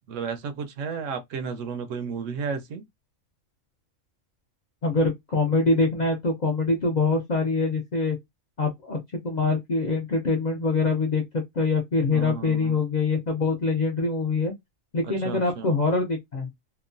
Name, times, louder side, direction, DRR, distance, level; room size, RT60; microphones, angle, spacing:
voice 1, 0.1-2.8 12.1-12.8 15.0-15.8, right 5 dB, 75° right, 0.9 m, -33 dB
voice 2, 4.8-8.2 8.6-9.0 9.2-11.2 11.5-14.5 14.9-16.5, left 3 dB, 55° left, 0.5 m, -24 dB
2.9 x 2.2 x 2.5 m
omnidirectional pair, 1.4 m